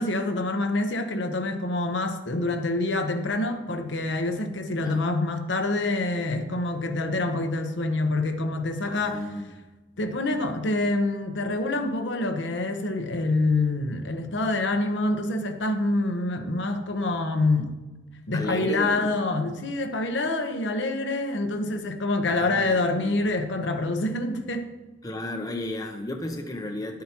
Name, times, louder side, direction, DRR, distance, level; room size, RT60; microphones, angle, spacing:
voice 1, 0.0-9.3 10.0-17.7 18.3-24.7, left 2 dB, 75° left, 5 dB, 0.9 m, -26 dB
voice 2, 8.9-9.5 18.3-19.2 22.3-23.2 25.0-27.0, left 1 dB, 20° left, 4 dB, 0.6 m, -34 dB
11.0 x 7.5 x 2.9 m, 1.2 s
head